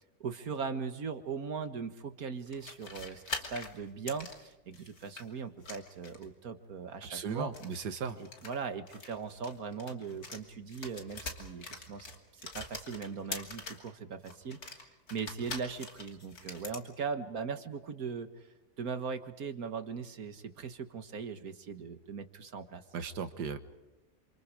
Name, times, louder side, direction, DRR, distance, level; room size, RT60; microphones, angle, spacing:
voice 1, 0.2-7.5 8.2-18.5 18.8-22.8, right 5 dB, 65° right, 9 dB, 1.9 m, -39 dB
sound 1, 2.5-5.2 5.6-6.3 7.4-10.4 10.7-13.9 14.2-16.8, left 3 dB, 65° left, 3.3 m, -44 dB
voice 2, 7.1-8.2 22.9-23.6, right 6 dB, 85° right, 9 dB, 1.9 m, -36 dB
28.0 x 27.5 x 5.1 m, 1.0 s
omnidirectional pair, 1.7 m